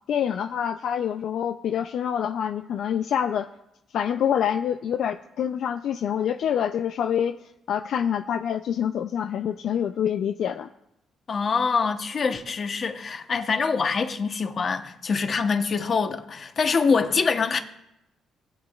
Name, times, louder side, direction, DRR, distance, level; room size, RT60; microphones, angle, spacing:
voice 1, 0.1-3.5 3.9-7.3 7.7-10.7, left 9 dB, 70° left, 0.4 m, -26 dB
voice 2, 11.3-17.6, left 5 dB, 45° left, 1.0 m, -24 dB
19.5 x 7.7 x 2.4 m
cardioid pair, 90°, 0 cm